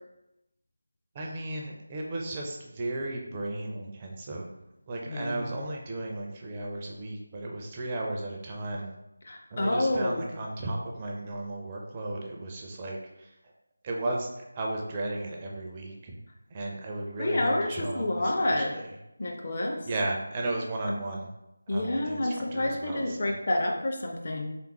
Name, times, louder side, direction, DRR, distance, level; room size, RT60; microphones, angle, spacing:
voice 1, 1.1-4.5 4.9-8.9 9.5-13.3 13.8-16.2 16.5-18.8 19.9-21.3 21.7-23.3, right 2 dB, 20° right, -1 dB, 0.4 m, -35 dB
voice 2, 5.1-5.6 9.3-10.3 17.2-18.7 19.2-19.9 20.9-21.0 21.7-24.4, left 1 dB, 40° left, 1 dB, 0.5 m, -29 dB
3.4 x 3.4 x 2.9 m, 0.91 s
figure-of-eight pair, 160°, 0 cm